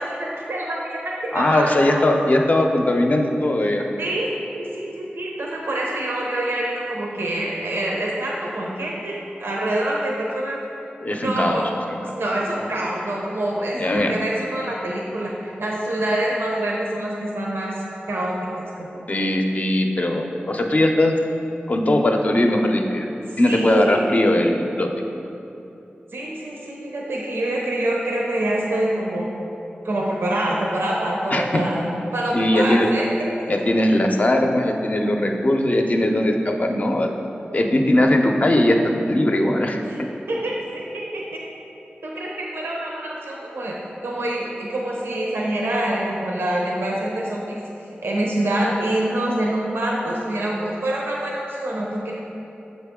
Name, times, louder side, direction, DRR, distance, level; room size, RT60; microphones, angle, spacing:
voice 1, 0.0-2.0 4.0-4.3 4.5-10.6 11.1-11.7 12.1-19.1 23.3-24.2 26.1-29.3 29.8-33.1 39.8-40.0 40.3-41.4 42.0-43.8 44.0-47.6 48.0-52.1, right 1 dB, 85° right, -3 dB, 0.6 m, -26 dB
voice 2, 1.3-3.8 11.0-11.6 11.9-12.0 13.7-14.1 19.1-21.1 21.7-23.1 23.4-24.9 31.3-31.6 32.3-32.9 33.5-37.1 37.5-38.8 39.1-39.8, left 1 dB, 40° left, 3 dB, 0.5 m, -19 dB
6.7 x 4.0 x 3.6 m, 2.9 s
wide cardioid pair, 65°, 4 cm